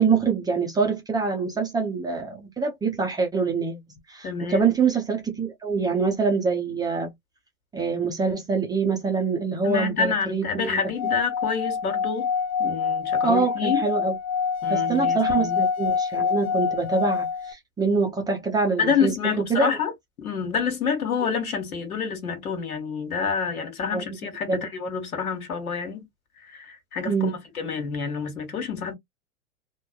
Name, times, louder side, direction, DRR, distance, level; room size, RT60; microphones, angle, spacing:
voice 1, 0.0-7.1 7.7-10.8 13.2-14.2 14.7-19.7 23.9-24.1 24.5-24.7 27.1-27.4, right 5 dB, 10° right, 0.5 m, -25 dB
voice 2, 4.2-4.7 9.6-12.3 12.6-13.8 14.6-15.6 18.8-19.9 20.2-26.1 26.4-28.9, left 6 dB, 80° left, 1.4 m, -28 dB
Singing / Glass, 10.9-17.5, left 6 dB, 45° left, 0.6 m, -26 dB
3.1 x 2.2 x 2.3 m
hypercardioid pair, 100°, 43 cm